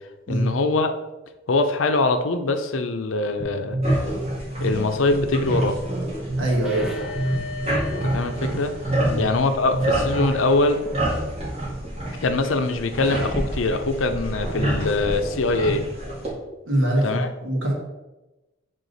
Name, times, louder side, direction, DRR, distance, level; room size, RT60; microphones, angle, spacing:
voice 1, 0.3-1.0 1.5-3.8 4.6-5.8 8.0-8.7 9.2-10.8 12.2-15.8 17.0-17.3, left 3 dB, 85° left, 7 dB, 0.6 m, -23 dB
sound 1, 3.4-10.3, right 1 dB, 60° right, 0.8 m, -29 dB
sound 2, 3.8-16.3, right 1 dB, 35° right, 2.0 m, -29 dB
voice 2, 6.4-6.9 9.0-9.2 16.6-17.7, right 1 dB, 80° right, -2 dB, 1.6 m, -23 dB
sound 3, 6.6-9.2 10.8-11.1 13.0-13.6, left 3 dB, 5° right, 0.7 m, -37 dB
6.6 x 3.7 x 4.0 m, 1.1 s
head